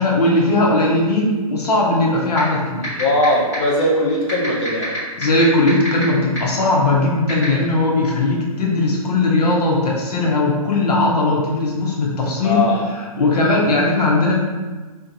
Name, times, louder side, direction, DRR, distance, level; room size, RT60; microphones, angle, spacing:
voice 1, 0.0-2.9 5.2-12.6 12.9-14.3, left 2 dB, 85° left, -2 dB, 0.7 m, -18 dB
sound 1, 2.4-2.5 2.8-3.2 3.5-3.6 4.3-6.0 6.4-6.5 7.3-7.4, left 2 dB, 5° left, 1.2 m, -26 dB
voice 2, 3.0-5.0 12.4-12.8, left 1 dB, 45° left, -3 dB, 0.8 m, -19 dB
2.4 x 2.2 x 3.9 m, 1.3 s
hypercardioid pair, 145°, 19 cm